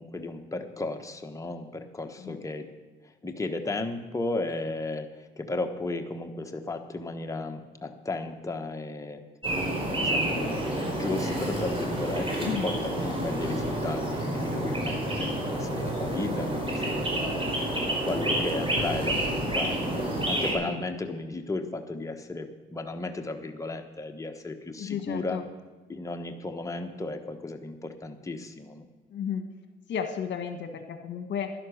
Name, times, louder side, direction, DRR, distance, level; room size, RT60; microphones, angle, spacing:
voice 1, 0.0-2.7 3.2-9.2 9.9-17.3 17.9-25.4 25.9-28.8, left 2 dB, 15° left, 5 dB, 1.3 m, -34 dB
sound 1, 9.4-20.5, right 1 dB, 25° right, 5.0 m, -29 dB
voice 2, 24.8-25.4 29.1-29.5 29.9-31.5, left 7 dB, 65° left, 7 dB, 1.3 m, -33 dB
11.5 x 11.0 x 6.5 m, 1.3 s
cardioid pair, 90°, 20 cm